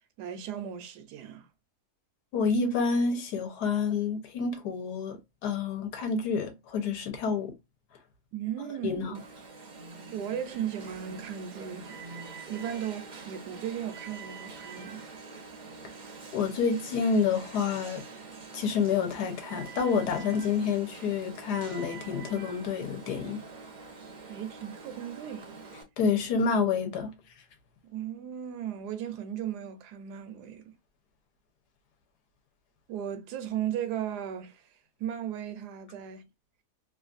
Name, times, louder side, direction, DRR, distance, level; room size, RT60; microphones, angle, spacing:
voice 1, 0.2-1.5 8.3-9.2 10.1-12.0 12.5-15.0 24.3-25.5 27.8-30.7 32.9-34.7 35.0-36.3, right 9 dB, 85° right, 1.2 m, -36 dB
voice 2, 2.3-5.2 5.4-7.5 8.8-9.1 16.3-18.0 18.5-23.5 26.0-27.1, left 5 dB, 90° left, 1.3 m, -28 dB
Alarm, 9.1-25.8, right 4 dB, 60° right, 0.4 m, -45 dB
3.2 x 2.4 x 2.4 m
omnidirectional pair, 1.7 m